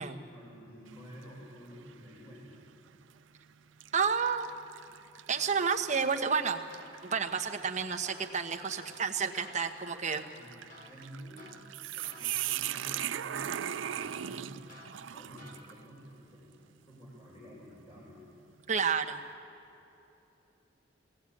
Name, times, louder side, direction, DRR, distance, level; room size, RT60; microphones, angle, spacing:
voice 1, 0.0-2.6 10.3-10.6 10.9-11.5 11.9-16.5 16.9-18.3, equal, 30° left, -7 dB, 5.2 m, -50 dB
sound 1, 0.9-1.3 1.9-2.0 2.9-3.2 3.8-15.8, right 11 dB, 85° right, 0.4 m, -40 dB
voice 2, 3.9-4.5 5.3-6.6 7.0-10.2 18.7-19.2, right 6 dB, 40° right, 4 dB, 1.1 m, -30 dB
sound 2, 5.3-16.0, left 2 dB, 50° left, 4.4 m, -55 dB
20.5 x 17.0 x 8.6 m, 3.0 s
head